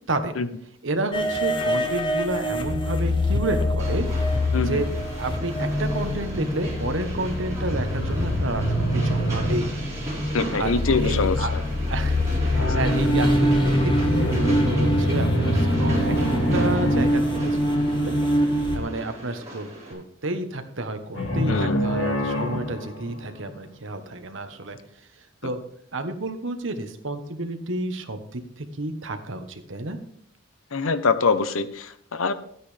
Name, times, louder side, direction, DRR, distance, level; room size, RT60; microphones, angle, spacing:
voice 1, 0.8-4.1 4.6-4.9 5.2-9.7 10.5-11.5 11.9-16.1 16.5-18.2 18.7-24.8 25.4-25.6 25.9-30.0, right 2 dB, 65° right, 7 dB, 1.2 m, -30 dB
sound 1, 1.1-18.8, left 1 dB, 25° left, 1.0 m, -25 dB
Train, 3.8-19.9, right 1 dB, 15° right, 4.4 m, -37 dB
voice 2, 4.5-4.9 10.3-11.6 21.5-21.8 30.7-32.3, left 4 dB, 85° left, 12 dB, 0.8 m, -24 dB
sound 2, 7.7-10.8 12.5-18.2 21.1-23.6, equal, 65° left, 2.1 m, -25 dB
13.0 x 9.2 x 3.4 m, 0.68 s
head